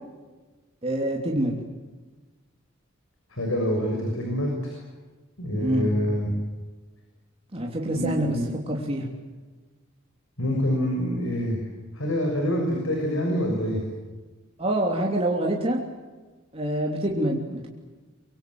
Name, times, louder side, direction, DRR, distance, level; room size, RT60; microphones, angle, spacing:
voice 1, 0.8-1.6 5.5-5.9 7.5-8.4 8.7-9.1 14.6-15.8 16.5-17.7, right 1 dB, 30° right, -1 dB, 3.2 m, -26 dB
voice 2, 3.3-4.7 5.4-6.3 8.0-8.5 10.4-11.6 11.9-13.8, equal, 90° left, 1 dB, 6.7 m, -26 dB
25.5 x 24.5 x 8.0 m, 1.3 s
head